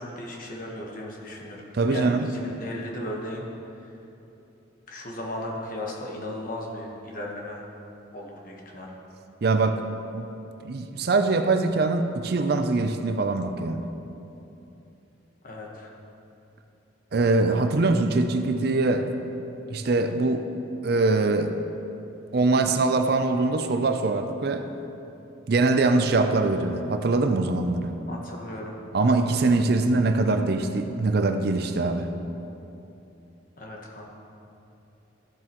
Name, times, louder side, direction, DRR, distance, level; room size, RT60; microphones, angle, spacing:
voice 1, 0.0-1.6 1.9-3.4 3.8-3.9 4.9-7.6 8.1-8.9 15.4-15.9 28.1-28.7 33.6-34.1, left 1 dB, 45° left, -1 dB, 1.2 m, -36 dB
voice 2, 1.7-2.3 9.4-9.8 10.1-10.3 10.6-13.9 17.1-19.1 19.7-20.5 20.8-21.5 22.3-24.7 25.5-28.0 28.9-32.1, right 3 dB, 55° right, 7 dB, 0.5 m, -23 dB
13.5 x 7.6 x 3.0 m, 2.9 s
head